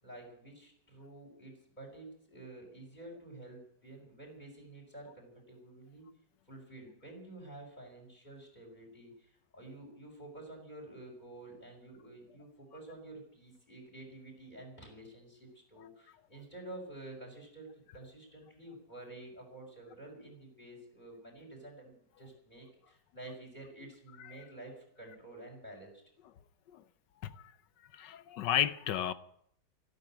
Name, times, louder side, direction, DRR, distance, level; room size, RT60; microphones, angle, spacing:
voice 1, 0.0-6.1 6.5-26.0, right 2 dB, 25° left, 1 dB, 5.4 m, -50 dB
voice 2, 27.9-29.1, left 10 dB, 80° left, 15 dB, 1.5 m, -32 dB
13.5 x 12.0 x 9.0 m, 0.69 s
omnidirectional pair, 1.9 m